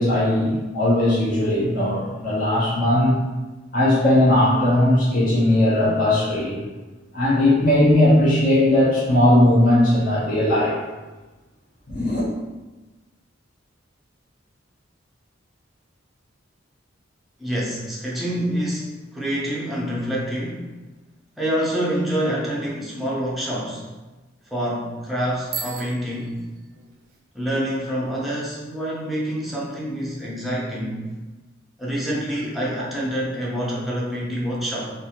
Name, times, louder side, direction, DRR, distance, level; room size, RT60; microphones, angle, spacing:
voice 1, 0.0-3.2 3.7-6.6 7.1-10.8 11.9-12.2, left 1 dB, 45° left, -8 dB, 0.7 m, -18 dB
voice 2, 17.4-20.6 21.4-23.8 24.5-26.4 27.3-31.0 31.8-34.9, equal, ahead, -6 dB, 0.6 m, -26 dB
Bicycle bell, 25.4-27.2, right 6 dB, 50° right, 0.4 m, -36 dB
2.6 x 2.4 x 2.8 m, 1.2 s
head